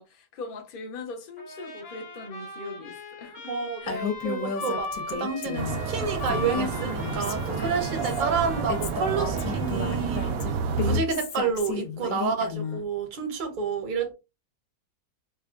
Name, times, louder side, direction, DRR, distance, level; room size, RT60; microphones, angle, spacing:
voice 1, 0.0-3.5 3.8-4.0, left 3 dB, 45° left, 0.8 m, -40 dB
Trumpet, 1.4-10.5, left 2 dB, 65° left, 1.6 m, -39 dB
voice 2, 3.5-10.5 10.8-14.1, right 5 dB, 40° right, 0.8 m, -29 dB
Female speech woman speaking, 3.9-5.8 6.2-8.2 8.7-12.8, left 6 dB, 90° left, 1.4 m, -34 dB
sound 1, 5.6-11.0, right 5 dB, 70° right, 0.9 m, -29 dB
4.2 x 2.3 x 2.4 m
omnidirectional pair, 1.7 m